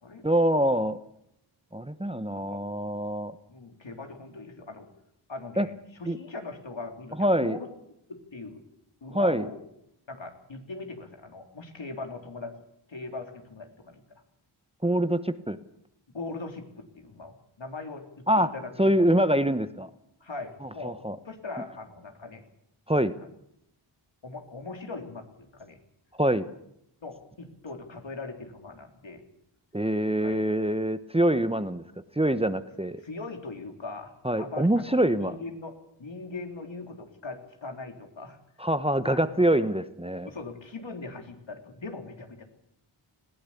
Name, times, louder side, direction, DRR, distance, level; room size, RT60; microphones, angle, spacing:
voice 1, 0.2-1.0 1.7-3.3 5.6-5.7 6.1-6.2 7.2-7.6 9.1-9.5 14.8-15.6 18.3-18.5 18.8-19.9 20.8-21.2 22.9-23.1 26.2-26.5 29.7-31.8 32.2-33.0 34.2-35.4 38.6-40.3, right 1 dB, 10° right, 12 dB, 1.0 m, -25 dB
voice 2, 3.5-4.9 5.3-7.7 8.1-8.6 9.0-9.6 10.1-12.6 12.9-14.0 16.1-18.9 20.2-21.0 21.3-22.4 23.2-23.3 24.2-25.8 27.0-29.2 30.2-30.4 33.0-38.4 39.0-39.4 40.2-42.4, left 3 dB, 65° left, 4 dB, 3.4 m, -40 dB
20.5 x 16.0 x 8.5 m, 0.78 s
cardioid pair, 45°, 49 cm